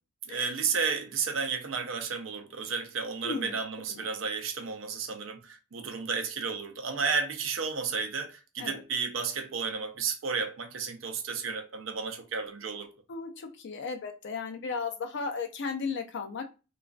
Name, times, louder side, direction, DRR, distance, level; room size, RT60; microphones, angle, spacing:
voice 1, 0.3-12.9, right 5 dB, 70° right, 0.5 m, -32 dB
voice 2, 13.1-16.4, left 5 dB, 60° left, 0.4 m, -35 dB
2.3 x 2.3 x 2.3 m
head